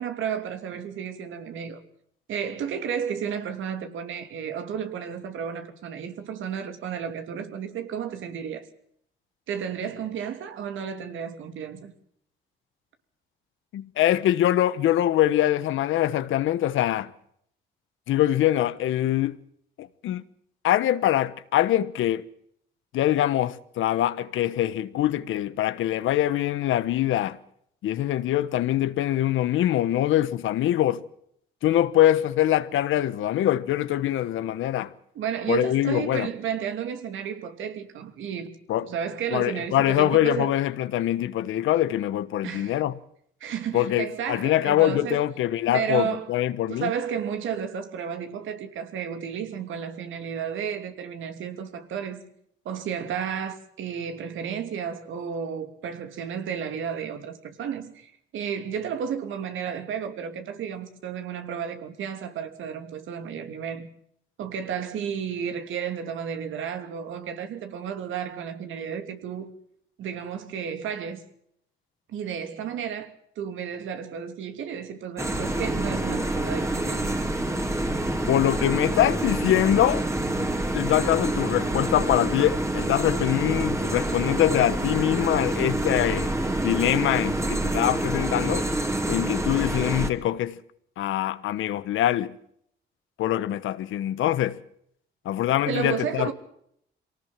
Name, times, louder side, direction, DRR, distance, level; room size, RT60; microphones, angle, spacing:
voice 1, 0.0-1.8 2.3-8.7 9.5-11.9 35.1-38.6 38.8-40.5 42.4-42.8 43.4-45.2 45.7-46.4 46.7-52.3 52.6-63.9 64.4-69.5 70.0-71.2 72.1-77.0 95.7-96.3, right 8 dB, 80° right, 3.0 m, -32 dB
voice 2, 13.7-17.1 18.1-19.4 19.8-20.2 20.6-22.2 22.9-27.4 27.8-31.0 31.6-34.9 35.5-36.3 38.7-38.9 39.3-42.9 43.7-46.9 78.3-80.0 80.4-86.3 86.6-88.7 89.1-90.6 91.0-92.3 93.2-94.6 95.2-96.3, left 13 dB, 80° left, 1.2 m, -23 dB
sound 1, 75.2-90.1, right 1 dB, 15° right, 2.7 m, -27 dB
24.5 x 18.5 x 7.5 m
cardioid pair, 90°, 20 cm